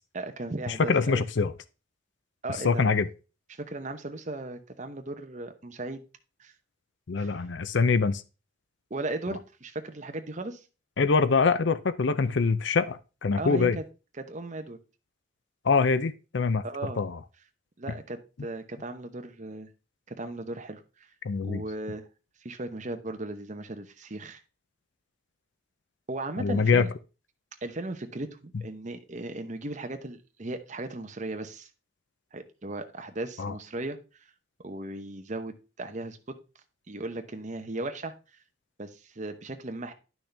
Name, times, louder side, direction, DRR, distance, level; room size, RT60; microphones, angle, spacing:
voice 1, 0.1-1.2 2.4-2.9 3.5-6.0 6.4-6.5 7.2-7.3 8.9-10.6 13.4-13.8 14.2-14.8 16.6-17.0 17.8-19.7 20.1-21.1 21.4-22.0 22.4-24.4 26.1-26.9 27.6-31.7 32.3-34.2 34.6-36.3 36.9-38.1 38.8-39.9, right 2 dB, 35° right, 0.9 m, -37 dB
voice 2, 0.7-1.5 2.6-3.1 7.1-8.2 11.0-13.8 15.6-16.6 17.0-17.2 21.2-21.6 26.4-26.9 33.4-33.5, left 4 dB, 60° left, 0.5 m, -24 dB
10.0 x 6.2 x 3.4 m
head